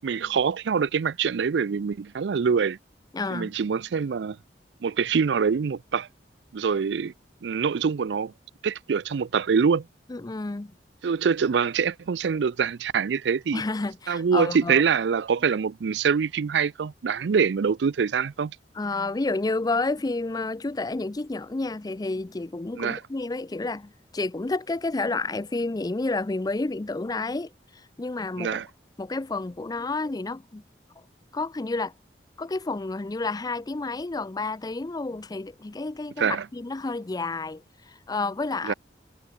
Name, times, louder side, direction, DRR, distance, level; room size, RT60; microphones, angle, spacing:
voice 1, 0.0-2.8 3.3-4.4 4.8-6.1 6.5-7.1 7.4-8.3 8.6-9.9 11.0-13.6 14.1-18.6 22.8-23.0 28.4-28.7 36.2-36.5 38.6-38.7, right 6 dB, 80° right, 0.4 m, -24 dB
voice 2, 3.1-3.5 10.1-10.7 13.5-14.8 18.7-27.5 28.0-28.6 29.0-30.6 31.3-31.9 32.4-38.7, left 3 dB, 20° left, 0.5 m, -30 dB
head